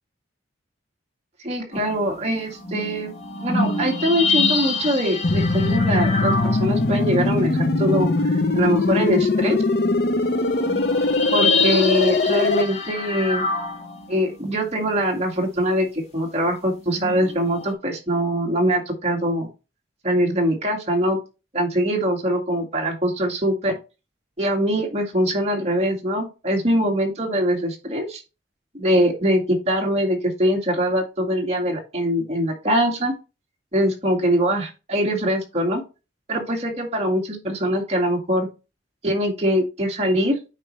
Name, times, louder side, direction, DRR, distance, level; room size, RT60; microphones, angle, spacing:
voice 1, 1.4-3.1 3.4-9.6 11.3-13.4 14.1-19.5 20.0-21.2 21.5-23.8 24.4-28.2 28.7-33.1 33.7-35.8 36.3-38.5 39.0-40.4, equal, 35° right, 0 dB, 2.0 m, -23 dB
sound 1, 1.7-8.8 9.2-9.3 9.6-14.6 16.8-17.7, left 3 dB, 35° left, 2.4 m, -27 dB
sound 2, 5.2-12.6, left 3 dB, 55° left, 0.7 m, -21 dB
8.8 x 4.7 x 3.2 m, 0.29 s
head